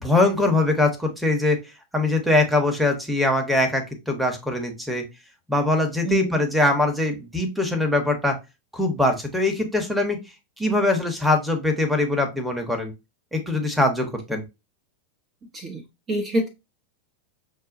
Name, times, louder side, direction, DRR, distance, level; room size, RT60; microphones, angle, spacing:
voice 1, 0.0-1.6 1.9-5.0 5.5-8.4 8.7-10.2 10.6-12.9 13.3-14.4, left 2 dB, ahead, 3 dB, 1.0 m, -22 dB
voice 2, 6.0-6.4 15.5-15.8 16.1-16.5, right 2 dB, 25° right, 2 dB, 0.7 m, -26 dB
6.4 x 2.2 x 2.5 m, 0.25 s
figure-of-eight pair, 90°, 0 cm